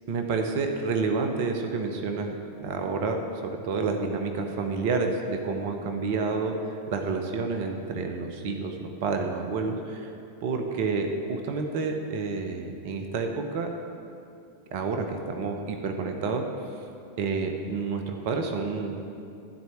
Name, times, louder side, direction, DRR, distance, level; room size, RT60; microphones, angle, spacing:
voice 1, 0.1-2.3 2.6-10.1 10.4-13.7 14.7-16.5 17.2-19.1, right 4 dB, 50° right, 5 dB, 0.9 m, -29 dB
13.0 x 4.6 x 8.2 m, 2.6 s
figure-of-eight pair, 90°, 0 cm